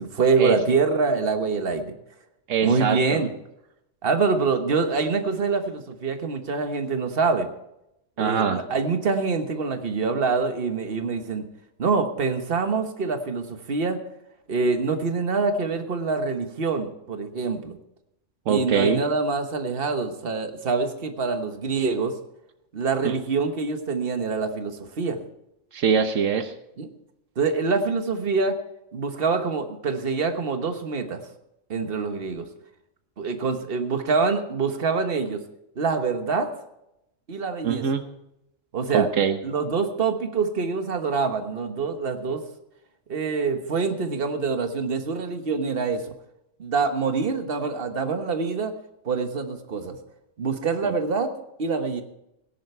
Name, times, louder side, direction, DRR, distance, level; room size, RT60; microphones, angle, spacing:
voice 1, 0.0-1.9 2.6-3.3 4.0-7.5 8.2-11.4 11.8-14.0 14.5-17.8 18.5-22.1 22.7-25.2 26.8-26.9 27.4-28.6 28.9-31.2 31.7-32.5 33.2-35.4 35.7-36.5 37.3-37.8 38.7-39.1 39.4-42.4 43.1-46.1 46.6-48.7 49.0-50.0 50.4-51.3 51.6-52.0, right 4 dB, 50° right, 6 dB, 1.5 m, -25 dB
voice 2, 2.5-3.2 8.2-8.6 18.5-19.0 23.0-23.2 25.7-26.5 37.6-38.0 38.9-39.4 50.8-50.9, right 7 dB, 80° right, 8 dB, 1.3 m, -23 dB
18.5 x 10.5 x 4.5 m, 0.83 s
omnidirectional pair, 1.3 m